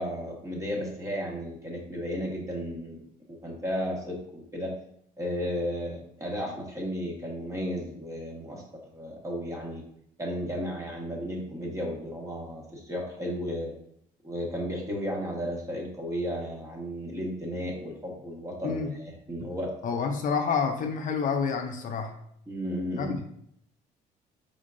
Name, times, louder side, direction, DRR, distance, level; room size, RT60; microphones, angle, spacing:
voice 1, 0.0-3.0 3.3-4.7 5.2-8.6 8.9-9.8 10.2-13.7 14.2-19.7 22.5-23.1, equal, 20° right, -2 dB, 1.4 m, -34 dB
voice 2, 19.8-22.1 23.0-23.2, left 5 dB, 50° left, 4 dB, 0.5 m, -28 dB
5.0 x 3.7 x 2.6 m, 0.70 s
cardioid pair, 110°, 17 cm